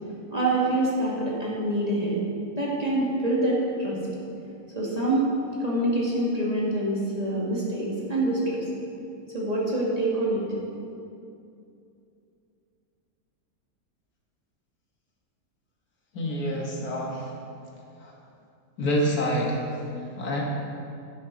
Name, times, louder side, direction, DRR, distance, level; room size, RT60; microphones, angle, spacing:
voice 1, 0.3-2.2 2.6-4.0 4.7-5.3 5.6-8.6 9.3-10.4, right 1 dB, 25° right, -6 dB, 2.3 m, -25 dB
voice 2, 16.1-17.3 18.0-18.1 18.8-20.4, equal, 80° left, -2 dB, 2.1 m, -27 dB
12.0 x 10.0 x 4.1 m, 2.6 s
omnidirectional pair, 1.6 m